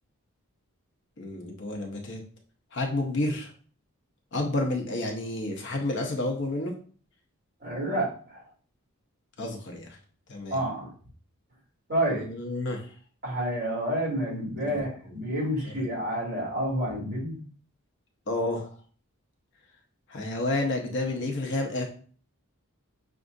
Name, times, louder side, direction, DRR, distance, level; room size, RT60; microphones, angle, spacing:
voice 1, 1.2-2.2 2.7-3.5 4.3-6.7 9.4-9.9 10.3-10.6 12.1-12.8 15.7-15.8 18.3-18.7 20.1-21.9, left 2 dB, 55° left, 1 dB, 0.7 m, -30 dB
voice 2, 7.6-8.4 10.5-10.9 11.9-12.2 13.2-17.4, right 1 dB, 45° right, -5 dB, 2.1 m, -29 dB
5.9 x 2.4 x 2.5 m, 0.42 s
head